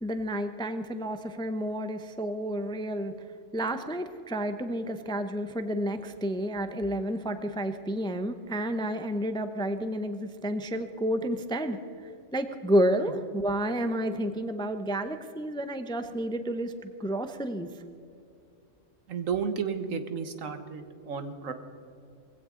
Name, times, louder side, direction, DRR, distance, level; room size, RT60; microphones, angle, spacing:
voice 1, 0.0-3.1 3.5-11.8 12.3-17.7, equal, 5° left, 9 dB, 0.4 m, -30 dB
voice 2, 19.1-21.5, right 6 dB, 85° right, 9 dB, 1.5 m, -32 dB
20.5 x 16.0 x 3.8 m, 2.6 s
omnidirectional pair, 1.3 m